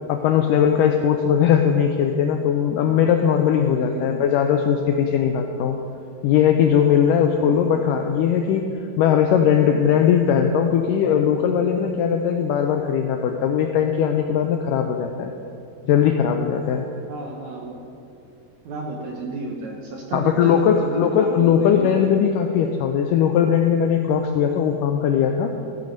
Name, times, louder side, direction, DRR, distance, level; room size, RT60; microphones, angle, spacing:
voice 1, 0.1-5.8 6.2-8.7 9.0-15.3 15.9-16.8 20.1-25.5, left 8 dB, 90° left, 4 dB, 1.9 m, -19 dB
voice 2, 3.8-4.1 7.3-7.7 17.1-17.8 18.6-22.1, right 3 dB, 70° right, 0 dB, 1.9 m, -32 dB
14.0 x 9.6 x 5.2 m, 2.7 s
omnidirectional pair, 4.4 m